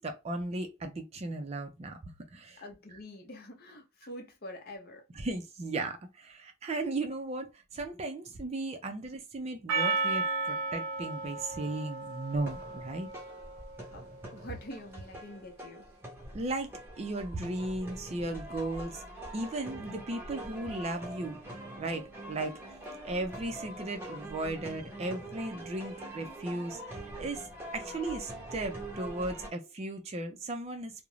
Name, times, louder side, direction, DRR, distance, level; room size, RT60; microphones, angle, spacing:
voice 1, 0.0-2.0 2.3-2.6 5.1-13.1 16.3-16.7 17.0-19.0 19.3-21.4 21.8-22.6 23.0-27.5 27.7-30.9, right 2 dB, 30° right, 0.4 m, -36 dB
voice 2, 2.6-5.0 13.9-15.8 27.2-27.3, left 1 dB, 45° left, 0.6 m, -46 dB
Percussion, 9.7-14.0, right 3 dB, 90° right, 0.5 m, -34 dB
sound 1, 12.3-29.5, right 1 dB, 10° right, 0.7 m, -44 dB
2.4 x 2.0 x 3.0 m
head